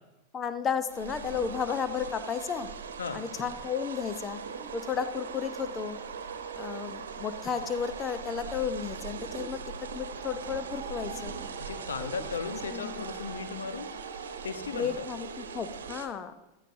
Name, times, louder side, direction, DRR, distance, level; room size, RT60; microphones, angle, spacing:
voice 1, 0.3-2.7 3.1-4.4 4.7-6.0 6.5-11.3 12.0-12.1 12.7-13.1 14.7-16.3, left 7 dB, 25° left, 10 dB, 1.0 m, -33 dB
sound 1, 0.9-16.1, right 6 dB, 65° right, 1.2 m, -40 dB
voice 2, 11.6-14.0 14.4-15.1, left 5 dB, 70° left, 9 dB, 1.0 m, -36 dB
15.5 x 12.5 x 2.8 m, 1.0 s
figure-of-eight pair, 90°, 0 cm